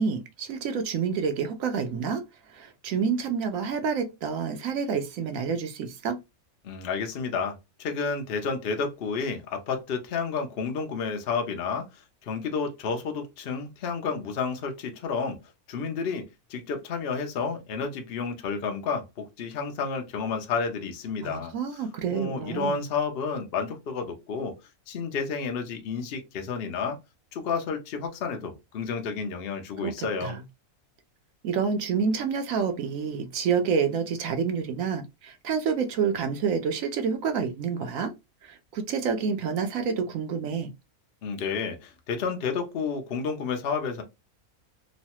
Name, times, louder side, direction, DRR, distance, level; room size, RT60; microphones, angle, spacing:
voice 1, 0.0-6.2 21.2-22.8 29.8-30.4 31.4-38.1 38.4-40.7, right 6 dB, 70° right, 0.9 m, -28 dB
voice 2, 6.6-15.4 15.7-21.5 22.1-24.6 24.9-27.0 27.3-30.4 41.2-44.0, left 5 dB, 60° left, 0.6 m, -31 dB
3.1 x 2.1 x 2.8 m
omnidirectional pair, 1.6 m